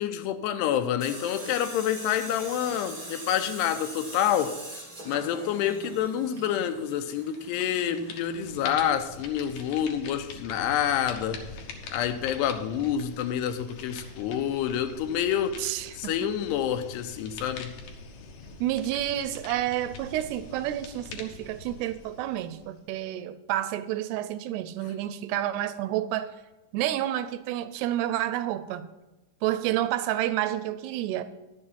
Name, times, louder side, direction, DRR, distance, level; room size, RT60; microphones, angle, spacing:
voice 1, 0.0-4.5 5.1-11.4 11.9-17.7, left 9 dB, 85° left, 9 dB, 2.7 m, -28 dB
Tools, 1.0-8.8, right 1 dB, 60° right, 0.3 m, -42 dB
sound 1, 7.3-7.6 7.9-22.9, left 4 dB, 70° left, 2.5 m, -44 dB
voice 2, 15.6-16.3 18.6-26.3 26.7-28.9 29.4-31.2, right 13 dB, 85° right, 12 dB, 2.5 m, -29 dB
11.0 x 7.1 x 5.4 m, 1.1 s
omnidirectional pair, 4.8 m